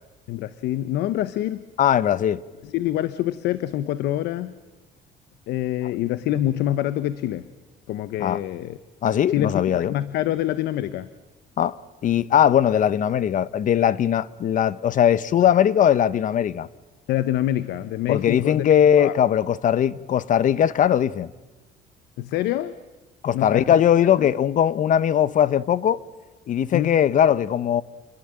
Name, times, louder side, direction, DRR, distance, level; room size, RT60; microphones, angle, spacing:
voice 1, 0.3-1.7 2.6-4.6 5.5-7.5 7.9-8.8 9.3-11.1 12.7-12.8 17.1-18.7 19.0-19.1 22.2-22.8 23.3-23.8 24.1-24.3 26.7-26.9, left 13 dB, 80° left, 1.0 m, -26 dB
voice 2, 1.8-2.4 8.2-8.4 9.0-9.9 11.6-11.8 12.0-16.7 18.1-21.3 23.2-26.0 26.5-27.8, left 9 dB, 50° left, 1.0 m, -20 dB
29.0 x 22.0 x 8.9 m
cardioid pair, 110°, 17 cm